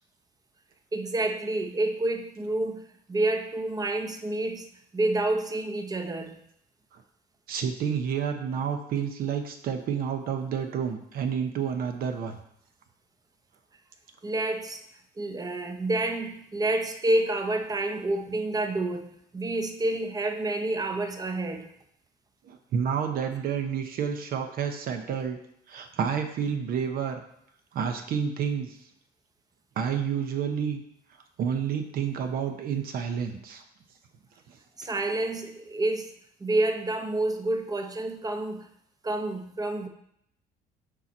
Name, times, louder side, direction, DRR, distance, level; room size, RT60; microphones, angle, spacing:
voice 1, 0.9-4.7 4.9-6.4 14.2-14.8 15.2-19.1 19.3-21.7 34.8-36.1 36.4-38.7 39.0-39.9, right 2 dB, 20° right, 6 dB, 0.8 m, -28 dB
voice 2, 7.5-12.4 22.4-25.4 25.7-27.2 27.7-28.8 29.8-30.8 31.4-33.6 34.5-34.9, right 7 dB, 60° right, 6 dB, 0.8 m, -30 dB
6.9 x 4.4 x 4.2 m, 0.74 s
cardioid pair, 110°, 17 cm